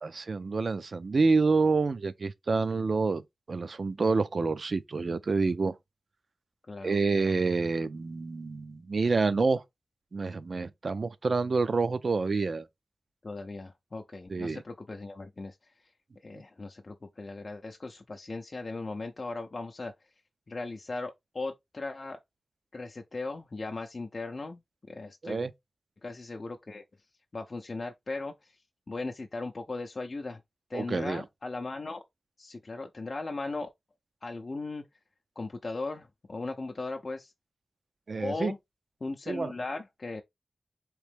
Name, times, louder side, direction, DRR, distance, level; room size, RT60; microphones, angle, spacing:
voice 1, 0.0-3.2 3.5-5.7 6.8-9.6 10.1-12.6 14.3-14.6 25.2-25.5 30.7-31.2 38.1-38.5 39.3-39.5, right 4 dB, 60° right, 0.4 m, -28 dB
voice 2, 6.7-7.4 13.2-15.6 16.2-19.9 20.5-22.2 22.7-24.6 24.9-25.4 26.0-26.8 27.3-28.5 28.9-30.4 30.7-32.0 32.4-33.7 34.2-34.8 35.4-37.3 38.2-38.6 39.0-40.2, left 3 dB, 45° left, 0.5 m, -38 dB
3.6 x 3.0 x 3.3 m
wide cardioid pair, 70°, 0 cm